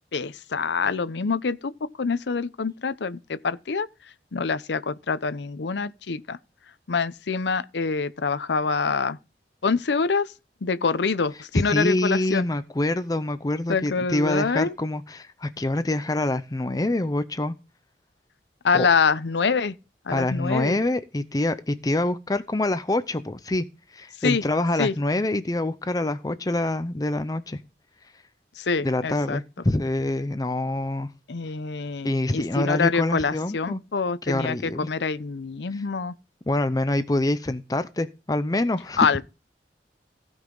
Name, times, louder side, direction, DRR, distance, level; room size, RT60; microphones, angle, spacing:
voice 1, 0.1-3.9 4.3-6.4 6.9-9.2 9.6-10.3 10.6-12.5 13.7-14.7 18.6-19.8 20.1-20.8 24.2-24.4 24.8-24.9 28.6-29.4 31.3-36.1 39.0-39.2, left 5 dB, 80° left, 0.6 m, -25 dB
voice 2, 11.5-17.5 18.7-18.9 20.1-23.6 23.9-27.6 28.8-31.1 32.0-33.8 34.2-34.9 35.7-35.8 36.5-39.0, left 1 dB, 20° left, 0.5 m, -26 dB
16.0 x 5.4 x 3.9 m
head